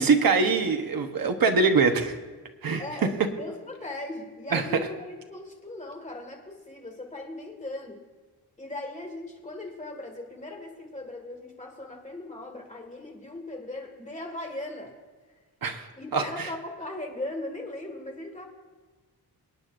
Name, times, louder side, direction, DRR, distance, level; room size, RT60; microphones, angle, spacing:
voice 1, 0.0-2.1 2.6-3.3 4.5-4.6 15.6-15.9 16.1-16.5, right 4 dB, 65° right, 5 dB, 1.1 m, -23 dB
voice 2, 2.8-8.0 8.6-14.9 16.0-18.5, left 2 dB, 20° left, 2 dB, 1.9 m, -38 dB
25.0 x 9.4 x 2.6 m, 1.4 s
wide cardioid pair, 165°, 38 cm